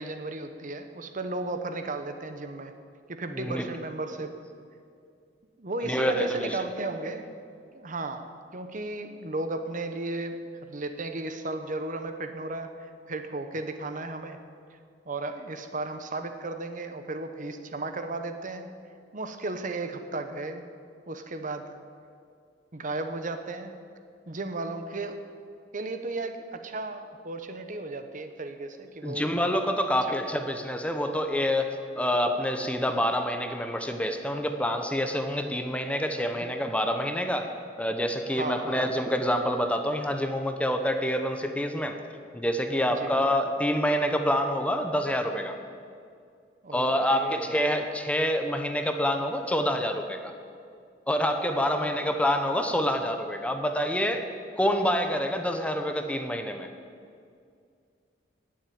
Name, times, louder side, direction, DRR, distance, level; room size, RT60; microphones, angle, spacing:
voice 1, 0.0-2.7 3.1-4.3 5.6-7.3 7.7-10.4 10.7-14.4 15.0-18.7 19.1-20.7 21.1-21.8 22.7-23.7 24.3-25.2 25.7-29.4 36.4-36.5 38.3-38.7 42.9-43.1 46.6-46.8 47.1-47.5 51.7-51.9, right 2 dB, 45° right, 7 dB, 1.0 m, -35 dB
voice 2, 3.3-3.7 5.8-6.6 29.0-37.5 37.8-42.0 42.3-45.5 46.7-50.3 51.1-54.3 54.6-56.7, equal, 5° left, 6 dB, 0.9 m, -27 dB
18.5 x 7.6 x 8.7 m, 2.3 s
head